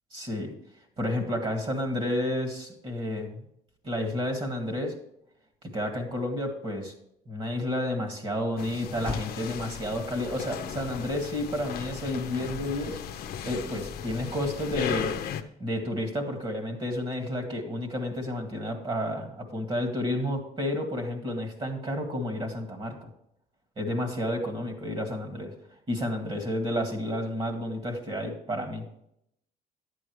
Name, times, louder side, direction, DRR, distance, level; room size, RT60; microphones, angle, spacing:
voice 1, 0.1-0.5 1.0-3.4 3.8-4.9 5.7-6.9 7.3-13.0 13.4-15.1 15.6-23.1 23.8-25.5 25.9-28.8, left 1 dB, 35° right, 4 dB, 2.0 m, -31 dB
Motor vehicle (road), 5.2-13.6, left 3 dB, 5° left, 1.1 m, -47 dB
sound 1, 8.6-15.4, left 8 dB, 65° left, 0.8 m, -36 dB
11.0 x 8.9 x 3.2 m, 0.75 s
cardioid pair, 110°, 17 cm